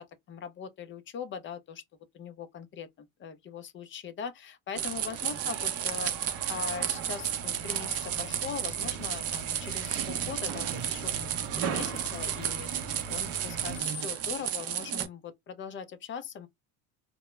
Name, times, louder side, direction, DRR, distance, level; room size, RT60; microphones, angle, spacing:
voice 1, 0.0-1.8 2.1-6.1 6.5-16.5, left 7 dB, 30° left, 0.4 m, -41 dB
sound 1, 4.7-15.1, right 10 dB, 35° right, 0.5 m, -33 dB
sound 2, 4.8-13.8, right 5 dB, 90° right, 0.6 m, -43 dB
2.2 x 2.0 x 3.0 m
supercardioid pair, 100°, 43 cm